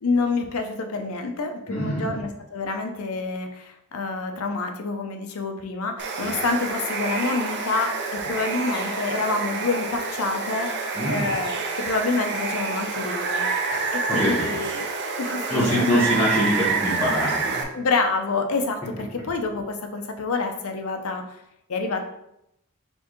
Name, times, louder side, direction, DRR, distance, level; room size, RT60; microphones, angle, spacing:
voice 1, 0.0-13.5 13.9-14.8 15.2-16.1 17.7-21.4 21.7-22.0, left 3 dB, 90° left, 5 dB, 0.6 m, -27 dB
voice 2, 1.7-2.2 6.2-6.3 10.9-11.3 13.7-14.5 15.5-17.6, equal, 5° left, -11 dB, 1.2 m, -24 dB
Water, 6.0-17.6, right 4 dB, 55° right, 0.6 m, -28 dB
4.4 x 3.5 x 3.0 m, 0.81 s
head